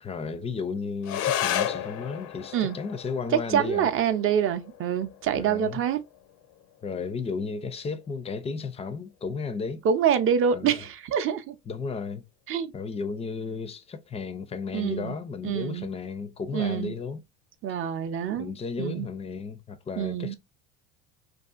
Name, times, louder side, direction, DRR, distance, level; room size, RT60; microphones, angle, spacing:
voice 1, 0.0-3.9 5.3-5.8 6.8-9.8 10.5-10.8 11.7-12.2 12.7-17.2 18.4-20.3, left 5 dB, 20° left, 0.4 m, -34 dB
sound 1, 1.0-10.0, left 11 dB, 75° left, 0.5 m, -35 dB
voice 2, 3.3-6.0 9.8-11.5 12.5-12.7 14.7-15.2 15.4-15.9 16.5-17.0 17.6-18.5 18.8-19.1 20.0-20.3, right 8 dB, 45° right, 0.5 m, -26 dB
2.6 x 2.4 x 2.4 m
supercardioid pair, 100°, 30 cm